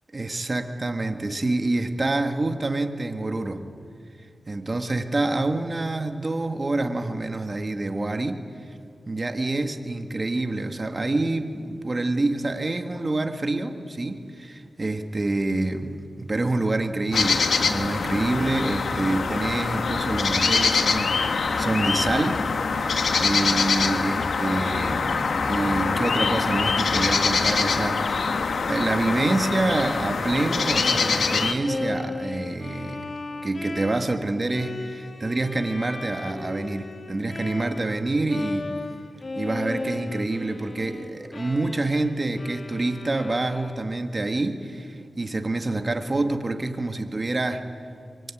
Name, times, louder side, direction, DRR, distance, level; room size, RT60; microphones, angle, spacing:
voice 1, 0.1-3.6 4.5-8.8 9.1-22.4 23.1-25.1 25.4-28.4 28.7-33.1 33.4-38.7 39.4-47.6, right 2 dB, 40° right, 6 dB, 2.0 m, -27 dB
sound 1, 17.1-31.5, left 4 dB, 80° left, 1.6 m, -24 dB
Bowed string instrument, 28.7-38.0 38.3-44.1, left 2 dB, 50° left, 1.8 m, -36 dB
24.0 x 23.5 x 9.3 m, 2.4 s
cardioid pair, 60°, 0 cm